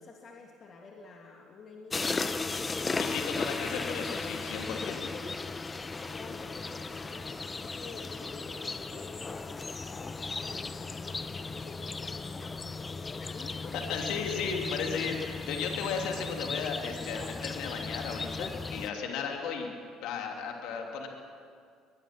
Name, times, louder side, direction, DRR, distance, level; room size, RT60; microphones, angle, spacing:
voice 1, 0.0-2.4 5.1-5.4 6.0-14.1, left 4 dB, 45° left, 0 dB, 2.8 m, -49 dB
sound 1, 1.9-18.9, left 3 dB, 25° left, 1.0 m, -36 dB
voice 2, 2.9-5.1 13.2-13.4 13.9-19.7 20.0-21.1, left 6 dB, 65° left, 2 dB, 2.9 m, -35 dB
22.0 x 21.0 x 6.1 m, 2.2 s
hypercardioid pair, 60°, 0 cm